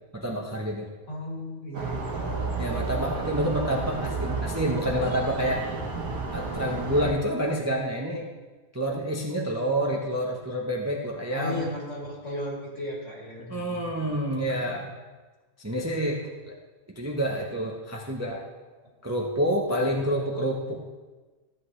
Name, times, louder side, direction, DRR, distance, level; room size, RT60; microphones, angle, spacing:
voice 1, 0.1-0.9 2.6-5.6 6.3-8.3 8.7-11.8 13.5-14.9 15.6-16.5 17.0-18.4 19.0-20.8, equal, 15° right, -1 dB, 0.8 m, -28 dB
voice 2, 1.1-2.4 11.3-13.9 19.8-20.3, left 1 dB, 55° left, -4 dB, 3.1 m, -36 dB
sound 1, 1.7-7.1, right 4 dB, 85° right, 1.7 m, -31 dB
14.0 x 8.4 x 3.3 m, 1.3 s
omnidirectional pair, 1.5 m